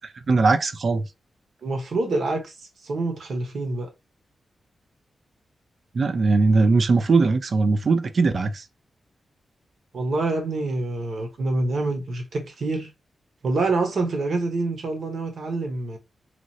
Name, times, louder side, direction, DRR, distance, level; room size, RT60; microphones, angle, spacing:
voice 1, 0.3-1.1 5.9-8.6, right 3 dB, 45° right, 0.4 m, -20 dB
voice 2, 1.6-2.5 2.8-3.9 9.9-12.9 13.4-16.0, right 2 dB, 60° right, 1.0 m, -26 dB
3.1 x 2.5 x 2.6 m
wide cardioid pair, 160°, 0 cm